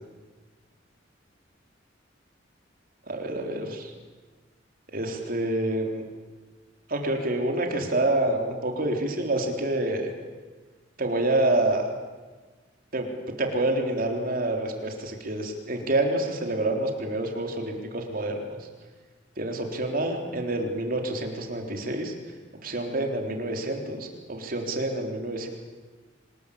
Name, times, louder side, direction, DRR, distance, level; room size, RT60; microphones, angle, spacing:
voice 1, 3.1-3.9 4.9-6.0 6.9-10.1 11.0-11.9 12.9-13.1 13.4-18.6 19.4-22.1 22.6-25.5, right 1 dB, 50° right, 2 dB, 3.9 m, -27 dB
25.0 x 20.5 x 8.7 m, 1.3 s
head